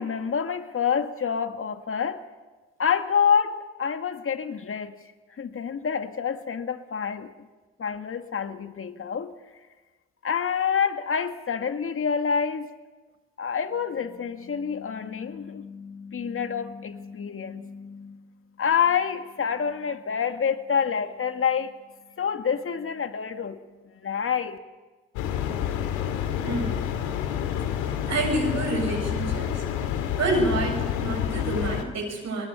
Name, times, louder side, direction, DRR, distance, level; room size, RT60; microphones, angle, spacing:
voice 1, 0.0-2.2 2.8-5.0 5.4-7.3 7.8-9.3 10.2-12.7 13.4-18.3 18.6-21.7 22.2-23.6 24.0-24.6, left 7 dB, 45° left, 2.0 m, -27 dB
sound 1, 25.2-31.8, left 9 dB, 80° left, 2.1 m, -28 dB
voice 2, 26.4-26.8 28.1-29.6 30.2-32.4, right 2 dB, 60° right, 7.7 m, -28 dB
30.0 x 20.5 x 6.9 m
hypercardioid pair, 45°, 30 cm